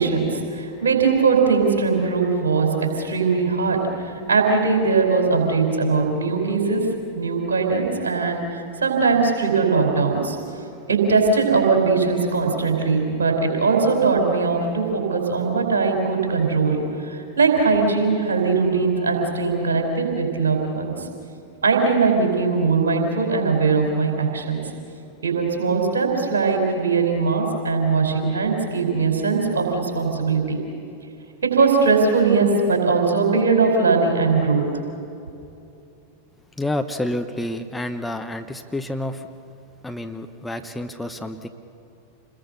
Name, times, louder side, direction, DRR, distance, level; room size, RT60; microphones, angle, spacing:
voice 1, 0.0-6.8 7.1-10.4 10.9-16.8 17.1-21.1 21.6-24.6 25.2-30.6 31.4-34.6, right 4 dB, 65° right, 2 dB, 4.9 m, -20 dB
voice 2, 36.6-39.3 39.8-41.5, left 1 dB, 5° left, 6 dB, 1.0 m, -29 dB
28.5 x 21.0 x 6.8 m, 2.7 s
figure-of-eight pair, 90°, 0 cm